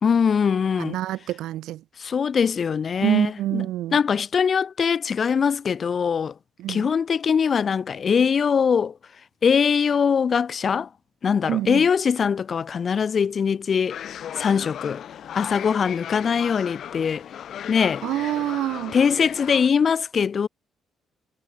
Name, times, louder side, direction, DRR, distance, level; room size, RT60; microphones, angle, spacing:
voice 1, 0.0-1.0 2.0-3.6 3.9-6.3 6.7-8.9 9.4-10.9 11.2-14.0 14.4-15.0 15.4-17.3 17.7-18.0 18.9-20.5, left 6 dB, 45° left, 3.6 m, -22 dB
voice 2, 0.8-1.8 3.0-4.0 6.6-6.9 11.4-11.9 18.0-19.0, right 14 dB, 85° right, 3.5 m, -26 dB
sound 1, 13.9-19.7, left 9 dB, 65° left, 3.1 m, -36 dB
cardioid pair, 90°, 0 cm